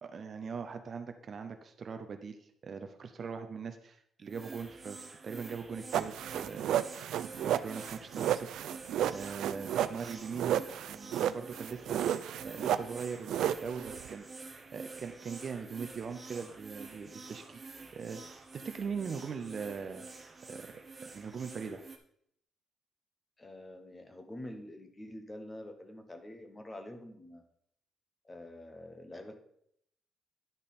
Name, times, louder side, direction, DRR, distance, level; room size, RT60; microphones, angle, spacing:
voice 1, 0.0-6.8 7.4-10.6 10.9-12.0 12.4-14.4 14.7-17.7 17.9-20.1 20.5-20.7 21.1-21.8, right 5 dB, 35° right, 7 dB, 0.6 m, -41 dB
sound 1, 4.3-22.0, right 3 dB, 20° right, 1.0 m, -48 dB
sound 2, 5.9-14.1, right 11 dB, 90° right, 0.4 m, -32 dB
voice 2, 23.4-27.4 28.2-29.4, left 1 dB, 15° left, 6 dB, 0.9 m, -46 dB
10.5 x 5.6 x 4.2 m, 0.71 s
cardioid pair, 175°, 0 cm